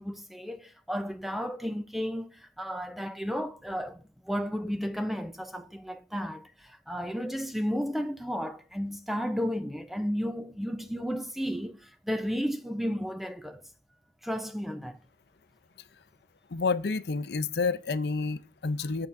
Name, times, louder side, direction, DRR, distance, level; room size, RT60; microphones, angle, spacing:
voice 1, 0.0-13.6 14.2-15.0, equal, ahead, 0.5 m, -33 dB
voice 2, 16.5-19.1, left 4 dB, 65° left, 0.5 m, -29 dB
8.6 x 7.1 x 2.6 m
head